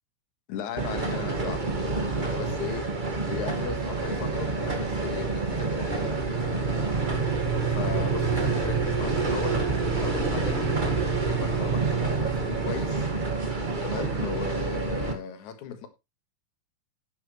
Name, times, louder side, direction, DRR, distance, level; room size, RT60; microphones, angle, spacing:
voice 1, 0.5-2.9 3.3-7.0 7.3-7.4 7.7-9.6 10.0-13.1 13.8-15.9, left 7 dB, 70° left, 2.9 m, -37 dB
sound 1, 0.8-15.1, right 4 dB, 25° right, 1.2 m, -27 dB
11.0 x 10.5 x 3.2 m
omnidirectional pair, 3.8 m